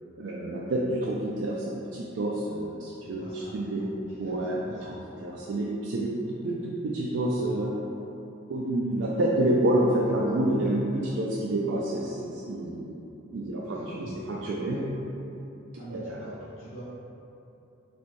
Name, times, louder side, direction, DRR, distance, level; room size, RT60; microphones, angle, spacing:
voice 1, 0.2-3.8 4.2-7.7 8.5-12.9 13.3-14.8 15.9-16.3, right 1 dB, 70° right, -5 dB, 0.4 m, -28 dB
voice 2, 3.0-3.5 4.1-4.4 4.6-5.0 13.7-14.2 14.6-14.8 15.8-16.8, equal, 80° left, -12 dB, 0.9 m, -44 dB
4.2 x 3.1 x 3.0 m, 2.9 s
head